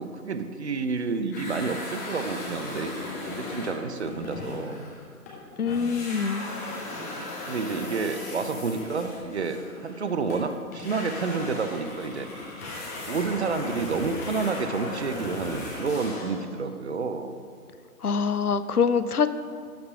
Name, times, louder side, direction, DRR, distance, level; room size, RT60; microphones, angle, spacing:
voice 1, 0.0-2.9 3.2-4.8 7.0-12.3 13.0-17.3, right 4 dB, 50° right, 9 dB, 0.7 m, -30 dB
sound 1, 1.3-5.4 5.7-16.5, left 2 dB, 10° left, 0.8 m, -37 dB
voice 2, 5.6-6.5 18.0-19.3, left 6 dB, 80° left, 13 dB, 0.6 m, -24 dB
11.5 x 4.7 x 5.6 m, 2.3 s
figure-of-eight pair, 135°, 44 cm